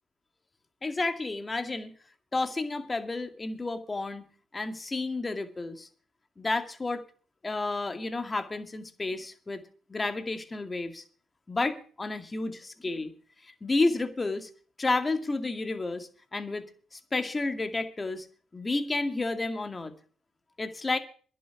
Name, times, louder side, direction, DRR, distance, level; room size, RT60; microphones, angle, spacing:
voice 1, 0.8-1.9 2.3-4.3 4.5-5.9 6.4-7.0 7.4-9.6 9.9-11.0 11.5-13.1 13.4-14.5 14.8-16.6 16.9-18.3 18.5-19.9 20.6-21.0, left 3 dB, 25° left, 8 dB, 2.2 m, -31 dB
11.0 x 7.5 x 9.5 m, 0.41 s
supercardioid pair, 75°, 0 cm